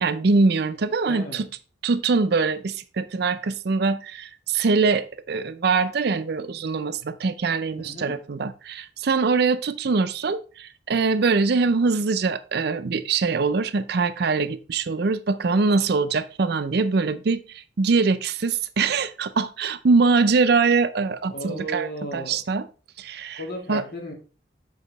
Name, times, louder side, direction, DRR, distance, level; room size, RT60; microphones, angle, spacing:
voice 1, 0.0-1.5 1.8-22.7 23.0-23.4 23.7-23.8, right 4 dB, 60° right, 0.5 m, -23 dB
voice 2, 1.0-1.5 7.8-8.2 21.3-22.4 23.4-24.1, right 1 dB, 60° left, 2.1 m, -34 dB
7.2 x 4.8 x 4.1 m
head